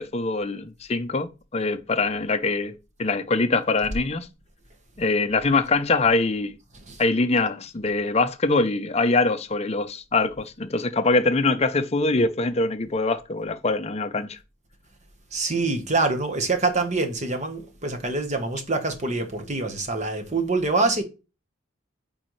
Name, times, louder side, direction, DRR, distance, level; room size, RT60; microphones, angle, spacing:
voice 1, 0.0-4.3 5.0-6.6 7.0-14.4, left 3 dB, 30° left, 0.6 m, -23 dB
voice 2, 15.3-21.0, right 3 dB, 35° right, 1.1 m, -25 dB
8.5 x 3.9 x 3.2 m
head